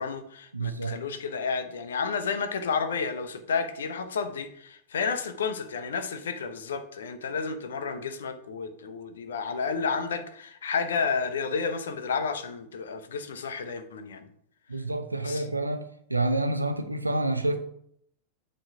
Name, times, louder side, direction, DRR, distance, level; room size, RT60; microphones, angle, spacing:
voice 1, 0.0-14.3 15.2-15.5, left 5 dB, 65° left, 0.8 m, -31 dB
voice 2, 0.5-1.0 14.7-15.8 16.1-17.6, right 2 dB, 85° right, 0.8 m, -28 dB
7.6 x 4.3 x 5.5 m
figure-of-eight pair, 90°, 0 cm